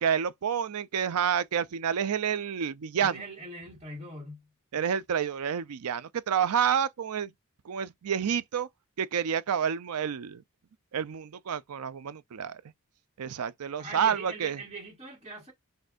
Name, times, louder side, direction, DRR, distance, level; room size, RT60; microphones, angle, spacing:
voice 1, 0.0-3.2 4.7-7.3 7.6-8.7 9.0-10.4 10.9-12.6 13.2-14.6, right 8 dB, 85° right, 0.4 m, -29 dB
voice 2, 3.0-4.5 13.8-15.5, right 2 dB, 25° right, 1.6 m, -42 dB
6.2 x 2.7 x 2.5 m
head